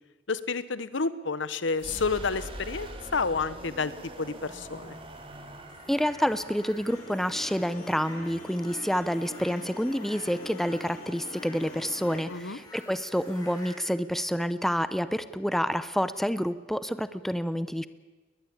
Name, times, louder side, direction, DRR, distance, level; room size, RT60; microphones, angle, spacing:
voice 1, 0.3-3.9 4.2-5.0 12.3-12.6, left 4 dB, 75° left, 15 dB, 1.0 m, -30 dB
sound 1, 1.7-9.4, right 1 dB, 30° right, 2.9 m, -45 dB
sound 2, 5.7-13.8, left 1 dB, 20° left, 5.6 m, -50 dB
voice 2, 5.9-17.9, equal, ahead, 14 dB, 0.7 m, -28 dB
sound 3, 6.9-12.2, left 2 dB, 45° left, 5.1 m, -44 dB
20.5 x 20.5 x 8.7 m, 1.2 s
head